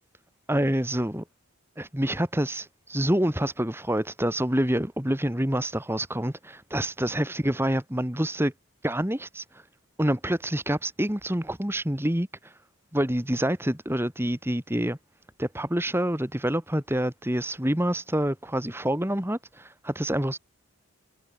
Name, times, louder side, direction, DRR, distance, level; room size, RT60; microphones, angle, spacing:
voice 1, 0.5-1.2 1.8-8.5 8.8-9.4 10.0-12.3 12.9-15.0 15.4-20.4, right 1 dB, 10° right, 1.8 m, -27 dB
head